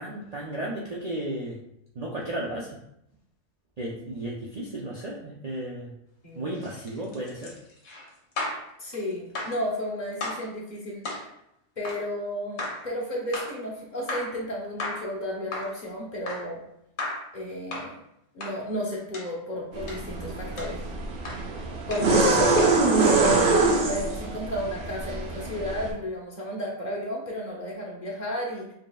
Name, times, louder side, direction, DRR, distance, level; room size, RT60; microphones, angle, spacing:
voice 1, 0.0-1.6 1.9-2.8 3.8-5.9 6.4-7.6 22.2-22.6, right 1 dB, 85° right, -4 dB, 0.3 m, -34 dB
sound 1, 6.5-8.7 9.3-9.6 10.2-10.5 11.0-11.3 11.8-12.1 12.6-12.9 13.3-13.6 14.1-14.4 14.8-15.1 15.5-15.8 16.3-16.5 17.0-17.3 17.7-17.9 18.4-18.6 19.1-19.3 19.9-20.1 20.6-20.8 21.2-21.5 21.9-22.1 22.6-22.8 23.2-23.5, left 2 dB, 65° left, 1.2 m, -35 dB
voice 2, 8.8-11.0 11.8-16.6 17.3-18.0 18.3-20.8 21.9-28.7, equal, 40° left, -3 dB, 0.9 m, -32 dB
sound 2, 19.7-25.9, right 3 dB, 50° right, 0.7 m, -24 dB
5.1 x 2.9 x 2.3 m, 0.78 s
omnidirectional pair, 1.5 m